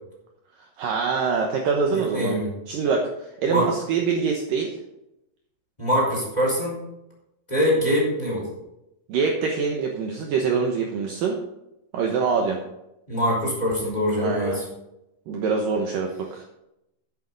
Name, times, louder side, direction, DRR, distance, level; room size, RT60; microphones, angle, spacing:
voice 1, 0.8-2.4 2.7-4.8 9.1-11.4 11.9-12.6 14.2-14.6 15.3-16.4, right 5 dB, 70° right, 1 dB, 2.4 m, -24 dB
voice 2, 1.9-2.5 3.5-3.7 5.8-6.8 7.5-8.5 13.1-14.6, equal, 10° left, -4 dB, 4.3 m, -23 dB
12.0 x 9.1 x 4.0 m, 0.87 s
omnidirectional pair, 4.7 m